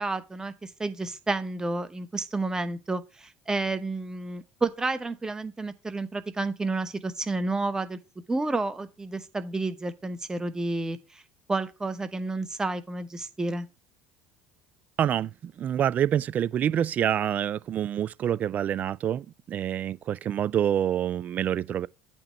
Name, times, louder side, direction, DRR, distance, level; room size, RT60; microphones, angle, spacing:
voice 1, 0.0-8.0 8.3-11.2 11.5-13.7, right 2 dB, 15° right, 1.0 m, -30 dB
voice 2, 15.0-21.9, right 10 dB, 45° right, 0.3 m, -27 dB
8.7 x 2.9 x 6.3 m
hypercardioid pair, 70°, 4 cm